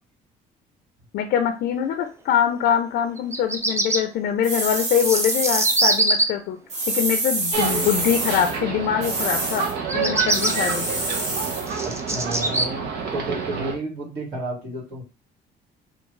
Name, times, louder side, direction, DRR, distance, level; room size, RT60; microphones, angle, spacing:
voice 1, 1.1-6.6 6.9-9.6 9.9-10.9, left 9 dB, 70° left, 6 dB, 0.5 m, -23 dB
Bird vocalization bird call bird song, 3.2-4.0 4.8-6.2 9.8-10.5 11.2-12.7, right 2 dB, 15° right, 0.5 m, -22 dB
sound 1, 4.4-6.0 6.7-8.6 9.0-9.7 10.3-11.7, right 2 dB, 40° right, 1.6 m, -26 dB
sound 2, 7.5-13.7, right 5 dB, 85° right, 0.8 m, -28 dB
voice 2, 11.8-15.0, right 2 dB, 70° right, -4 dB, 2.0 m, -32 dB
3.4 x 2.4 x 3.1 m, 0.31 s
cardioid pair, 110°, 17 cm